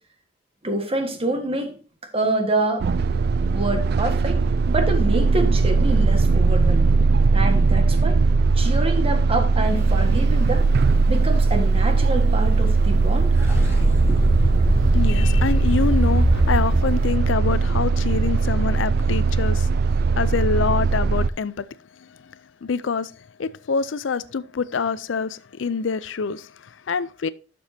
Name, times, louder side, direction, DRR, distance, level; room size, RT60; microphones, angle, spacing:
voice 1, 0.6-1.8 2.1-2.9 3.4-4.4 4.7-7.0 7.3-8.2 8.5-10.7 11.1-13.4 14.1-14.3, right 2 dB, 30° right, 1.6 m, -26 dB
sound 1, 2.8-21.3, right 4 dB, 55° right, 0.4 m, -19 dB
sound 2, 9.6-12.5 12.8-13.0 13.2-17.1, right 1 dB, 15° right, 3.3 m, -24 dB
voice 2, 14.9-19.7 20.2-21.6 22.0-22.3 22.6-23.1 23.4-27.3, left 5 dB, 75° left, 0.5 m, -26 dB
11.5 x 6.9 x 2.8 m
head